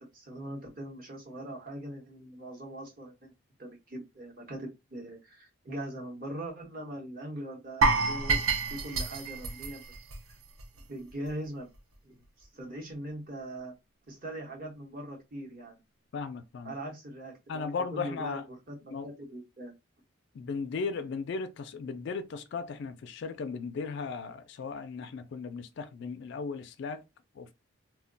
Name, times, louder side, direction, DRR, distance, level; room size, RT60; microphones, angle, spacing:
voice 1, 0.0-3.3 3.6-8.4 8.7-9.8 10.8-11.7 12.0-13.7 14.1-15.8 16.6-19.7, right 1 dB, 40° right, 0.9 m, -41 dB
sound 1, 7.8-10.8 11.1-11.3 11.7-11.8, right 3 dB, 75° right, 0.6 m, -28 dB
voice 2, 16.1-16.7 17.5-18.4 18.9-19.1 20.3-27.0 27.4-27.5, left 4 dB, 55° left, 0.3 m, -36 dB
2.2 x 2.1 x 3.7 m
head